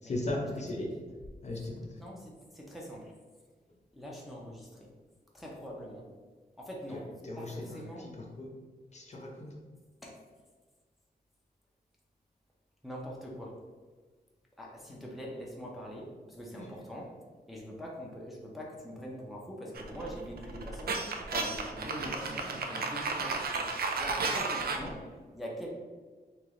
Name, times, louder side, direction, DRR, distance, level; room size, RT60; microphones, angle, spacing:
voice 1, 0.0-0.9 1.4-1.7 7.2-7.5 8.4-8.5 8.9-9.5 16.5-16.6, left 1 dB, 45° left, -1 dB, 0.6 m, -36 dB
voice 2, 2.0-3.1 3.9-4.9 5.3-6.1 6.6-8.1 10.0-10.2 12.8-13.6 14.6-17.1 17.5-21.0 21.3-25.0 25.3-25.7, equal, ahead, -3 dB, 0.6 m, -43 dB
sound 1, 19.8-24.9, right 3 dB, 65° right, 0.4 m, -33 dB
3.2 x 2.9 x 3.6 m, 1.4 s
wide cardioid pair, 175°, 17 cm